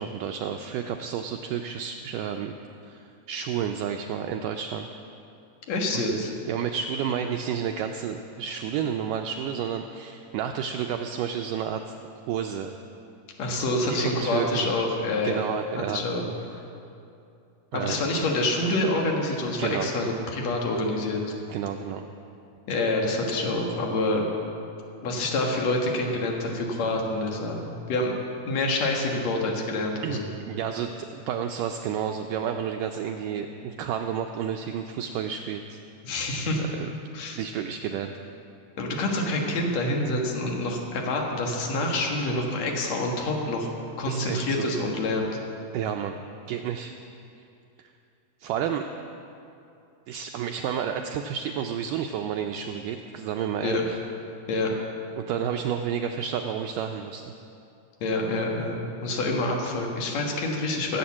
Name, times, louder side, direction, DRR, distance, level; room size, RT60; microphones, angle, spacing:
voice 1, 0.0-2.5 2.8-4.9 5.9-6.1 6.5-11.8 12.3-12.7 13.9-14.7 15.2-16.0 17.7-18.0 19.6-19.9 21.5-22.0 30.0-35.8 36.7-36.9 37.3-38.1 44.1-44.7 45.7-46.2 46.5-46.9 47.8-47.9 48.4-48.8 50.1-53.8 55.2-57.3, right 8 dB, 85° right, 5 dB, 1.9 m, -31 dB
voice 2, 5.7-6.3 13.4-15.5 15.8-16.2 17.7-21.3 22.7-24.3 25.0-28.2 28.5-30.3 36.0-36.6 37.1-37.4 38.8-43.7 44.0-45.3 53.6-53.8 54.5-54.7 58.0-61.0, left 2 dB, 55° left, 0 dB, 2.4 m, -27 dB
16.0 x 8.0 x 7.2 m, 2.6 s
omnidirectional pair, 4.3 m